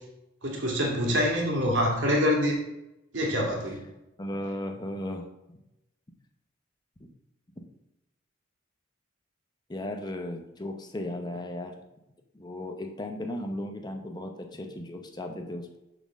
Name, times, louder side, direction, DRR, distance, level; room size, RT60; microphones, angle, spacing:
voice 1, 0.4-2.6 3.1-3.8, equal, 70° right, -1 dB, 2.3 m, -25 dB
voice 2, 4.2-5.6 7.0-7.1 9.7-11.7 12.3-15.8, left 1 dB, 20° left, 4 dB, 0.7 m, -36 dB
6.7 x 4.4 x 6.1 m, 0.89 s
head